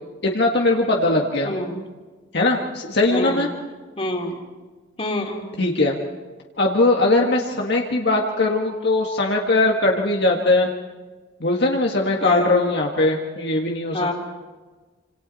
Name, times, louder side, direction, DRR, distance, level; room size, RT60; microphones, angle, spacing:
voice 1, 0.2-1.5 2.3-3.5 5.6-6.0 6.6-10.7 11.4-14.1, left 2 dB, 60° left, 0 dB, 1.8 m, -20 dB
voice 2, 1.4-1.8 3.1-3.5 4.0-4.4 5.0-5.4 12.2-12.7 13.9-14.1, left 1 dB, 30° left, 1 dB, 3.2 m, -26 dB
27.5 x 26.5 x 4.2 m, 1.3 s
head